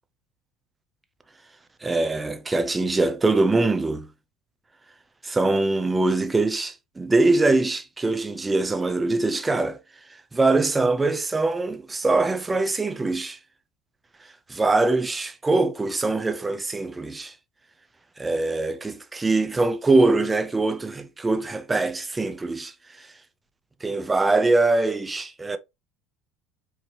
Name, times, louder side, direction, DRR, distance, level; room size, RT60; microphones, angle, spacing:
voice 1, 1.8-4.1 5.2-9.8 10.3-13.4 14.5-17.3 18.2-23.1 23.8-25.6, right 2 dB, 15° right, 0.6 m, -23 dB
4.7 x 2.7 x 2.8 m
supercardioid pair, 100°, 0 cm